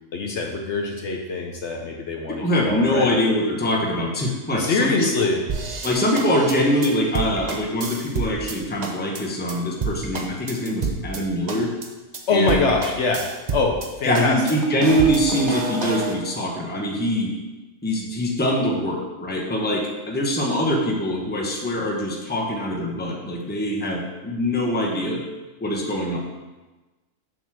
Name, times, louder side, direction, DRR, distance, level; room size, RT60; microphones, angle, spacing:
voice 1, 0.1-3.2 4.6-5.4 12.3-14.4, left 3 dB, 60° left, 2 dB, 1.0 m, -24 dB
voice 2, 2.4-4.9 5.2-5.3 5.8-11.7 12.3-12.6 14.0-17.3 17.8-25.2 25.6-26.2, equal, 10° left, -1 dB, 0.8 m, -23 dB
sound 1, 5.5-8.6 8.8-9.2 9.5-9.6 9.8-11.2 11.5-11.9 12.1-12.2 12.5-13.9 14.1-16.2, right 4 dB, 40° right, 0.7 m, -29 dB
7.0 x 4.0 x 6.1 m, 1.2 s
omnidirectional pair, 1.4 m